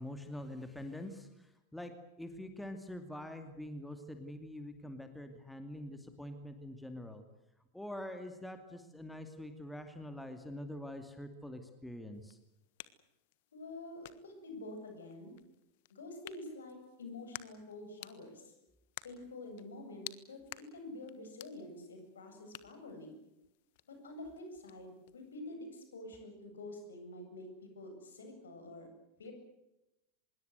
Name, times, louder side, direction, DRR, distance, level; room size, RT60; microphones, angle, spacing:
voice 1, 0.0-1.9 2.2-7.2 7.7-12.4, left 1 dB, 5° left, 7 dB, 2.5 m, -45 dB
sound 1, 12.1-25.4, left 17 dB, 50° left, 1.4 m, -54 dB
voice 2, 13.5-15.3 15.9-18.5 19.0-20.4 20.7-23.2 23.9-28.9 29.2-29.3, left 2 dB, 70° left, 5 dB, 7.9 m, -48 dB
25.5 x 22.0 x 8.0 m, 0.91 s
figure-of-eight pair, 90°, 0 cm